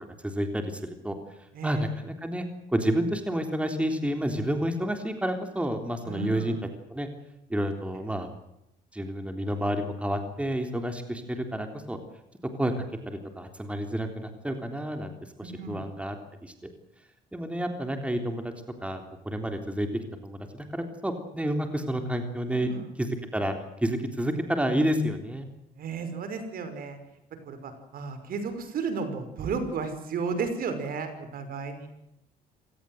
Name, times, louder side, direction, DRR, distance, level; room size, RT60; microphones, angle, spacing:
voice 1, 0.2-1.2 1.6-6.6 6.9-7.1 7.5-8.3 8.9-12.0 12.6-15.1 15.4-16.1 16.4-16.5 17.3-18.5 18.8-19.0 19.3-19.9 20.2-22.7 23.0-23.6 23.8-25.5, right 1 dB, 5° right, 6 dB, 3.6 m, -29 dB
voice 2, 1.5-1.9 6.0-6.6 15.4-15.8 22.5-22.9 25.8-27.0 27.5-31.9, right 4 dB, 60° right, 9 dB, 5.6 m, -33 dB
26.5 x 18.5 x 8.0 m, 0.83 s
cardioid pair, 110°, 17 cm